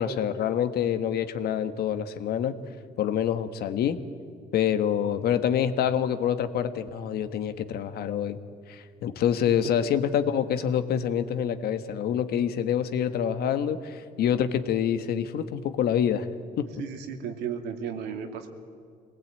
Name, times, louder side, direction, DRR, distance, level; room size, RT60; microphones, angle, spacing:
voice 1, 0.0-2.6 3.0-4.0 4.5-8.4 8.7-16.3 16.6-16.8, left 9 dB, 65° left, 10 dB, 1.4 m, -26 dB
voice 2, 16.8-18.5, right 7 dB, 85° right, 5 dB, 2.5 m, -34 dB
23.0 x 19.5 x 9.0 m, 2.2 s
cardioid pair, 110°, 17 cm